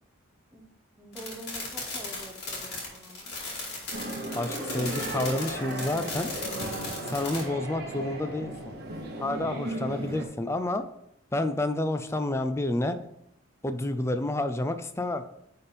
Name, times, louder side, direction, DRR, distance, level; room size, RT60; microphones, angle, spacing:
voice 1, 1.0-3.3 9.1-9.5, right 1 dB, 5° right, 1 dB, 1.0 m, -46 dB
sound 1, 1.1-7.4, left 3 dB, 50° left, 2.3 m, -37 dB
sound 2, 3.9-10.3, right 1 dB, 50° right, 1.2 m, -36 dB
voice 2, 4.3-6.3 7.1-8.7 9.2-10.8 11.3-13.0 13.6-15.2, left 1 dB, 15° left, 9 dB, 0.4 m, -29 dB
9.6 x 4.3 x 3.4 m, 0.76 s
head